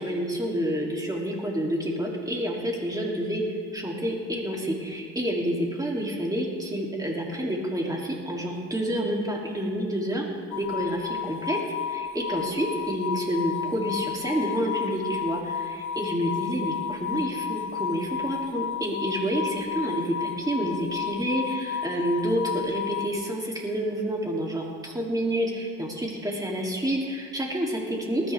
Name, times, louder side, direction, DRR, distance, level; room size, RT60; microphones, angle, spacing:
voice 1, 0.0-3.4 3.7-10.2 10.6-11.6 11.9-28.3, equal, 10° right, -2 dB, 3.0 m, -29 dB
sound 1, 10.5-23.1, left 8 dB, 70° left, 0.8 m, -32 dB
20.0 x 13.0 x 3.6 m, 2.1 s
cardioid pair, 90°, 30 cm